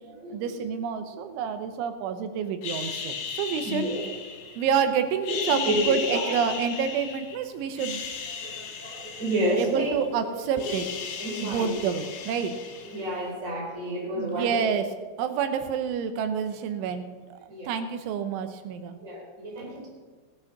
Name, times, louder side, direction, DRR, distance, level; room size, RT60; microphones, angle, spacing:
voice 1, 0.3-3.9 4.6-8.0 9.6-10.9 11.4-12.6 14.2-14.9 15.2-19.0, right 7 dB, 85° right, 8 dB, 3.5 m, -28 dB
sound 1, 2.6-4.8 5.2-7.4 7.7-10.1 10.4-13.2, left 6 dB, 70° left, 1.7 m, -36 dB
voice 2, 3.6-4.0 5.3-5.4 5.7-6.4 8.4-9.9 10.6-10.8 11.2-11.8 12.8-14.6 17.5-17.8 19.0-19.9, right 1 dB, 20° right, -2 dB, 4.0 m, -30 dB
17.5 x 9.5 x 6.0 m, 1.4 s
omnidirectional pair, 5.3 m